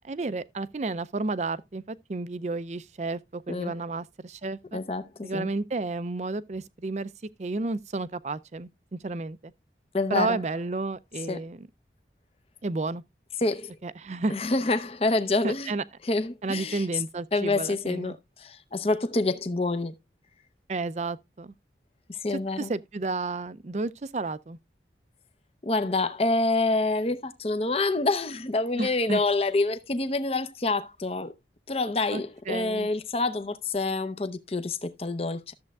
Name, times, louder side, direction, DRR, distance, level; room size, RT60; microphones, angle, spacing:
voice 1, 0.0-4.8 5.2-7.1 7.4-9.5 10.1-11.7 12.6-13.0 13.8-14.3 15.4-15.8 16.4-18.2 20.7-21.5 22.3-24.6 28.8-29.2 32.1-32.9, right 3 dB, 40° right, 0.4 m, -32 dB
voice 2, 4.7-5.5 9.9-10.4 11.3-11.4 13.4-13.7 14.3-15.7 16.0-16.9 17.3-19.9 22.1-22.7 25.6-31.3 31.7-35.5, left 2 dB, 35° left, 0.6 m, -27 dB
13.0 x 7.4 x 2.3 m
head